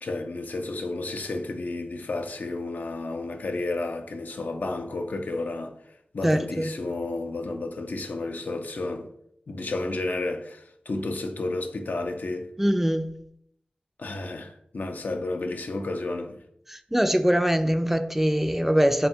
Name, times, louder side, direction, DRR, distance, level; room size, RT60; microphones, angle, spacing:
voice 1, 0.0-9.1 9.5-12.5 14.0-16.4, left 2 dB, 75° left, 0.4 m, -32 dB
voice 2, 6.2-6.7 12.6-13.1 16.7-19.1, equal, 10° right, 0.3 m, -23 dB
3.5 x 2.3 x 4.2 m
cardioid pair, 45°, 3 cm